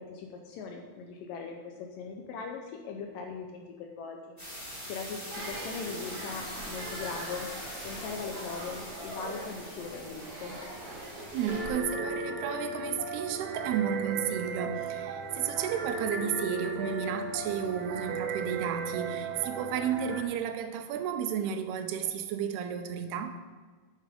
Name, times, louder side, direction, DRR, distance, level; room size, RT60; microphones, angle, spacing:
voice 1, 0.0-7.5 7.8-10.6, left 5 dB, 75° left, 3 dB, 2.1 m, -40 dB
sound 1, 4.4-11.6, equal, 10° left, 2.9 m, -43 dB
sound 2, 5.3-11.7, right 1 dB, 45° right, 3.5 m, -42 dB
voice 2, 11.0-23.3, right 8 dB, 90° right, 7 dB, 2.7 m, -33 dB
sound 3, 11.5-20.2, right 3 dB, 75° right, 1.8 m, -35 dB
8.5 x 7.4 x 5.1 m, 1.4 s
omnidirectional pair, 4.6 m